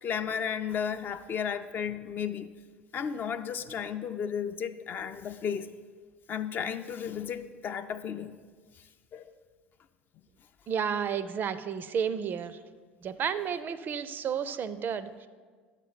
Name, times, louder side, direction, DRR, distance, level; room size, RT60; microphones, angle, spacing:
voice 1, 0.0-2.5 2.9-5.7 6.3-8.4 9.1-9.3, left 7 dB, 35° left, 10 dB, 0.4 m, -34 dB
voice 2, 10.7-12.6 13.0-15.3, right 7 dB, 35° right, 14 dB, 0.4 m, -32 dB
10.5 x 7.2 x 3.9 m, 1.5 s
figure-of-eight pair, 70°, 6 cm